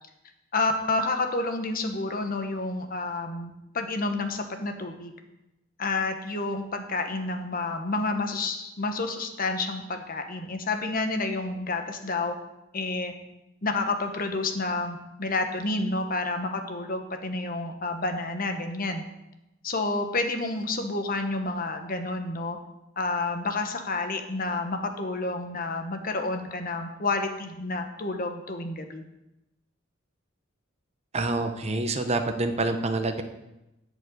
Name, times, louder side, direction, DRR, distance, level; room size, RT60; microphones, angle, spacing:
voice 1, 0.5-5.1 5.8-12.3 12.7-13.1 13.6-19.0 19.6-22.6 23.0-29.0, left 3 dB, 45° left, 6 dB, 1.2 m, -29 dB
voice 2, 31.1-33.2, right 2 dB, 30° right, 7 dB, 0.9 m, -27 dB
11.5 x 5.3 x 8.5 m, 0.94 s
head